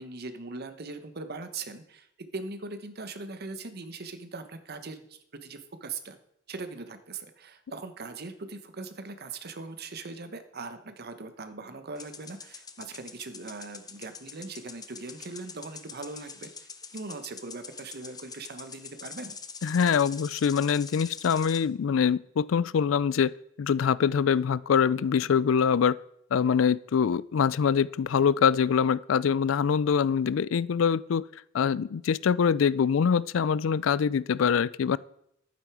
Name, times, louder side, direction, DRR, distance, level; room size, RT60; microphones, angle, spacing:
voice 1, 0.0-6.2 6.5-19.4, right 3 dB, 55° right, 9 dB, 1.1 m, -40 dB
sound 1, 11.9-21.6, left 5 dB, 20° left, 0.8 m, -45 dB
voice 2, 19.6-23.3 23.6-26.0 26.3-31.2 31.5-35.0, left 7 dB, 70° left, 20 dB, 0.4 m, -24 dB
11.5 x 9.2 x 4.8 m, 0.75 s
head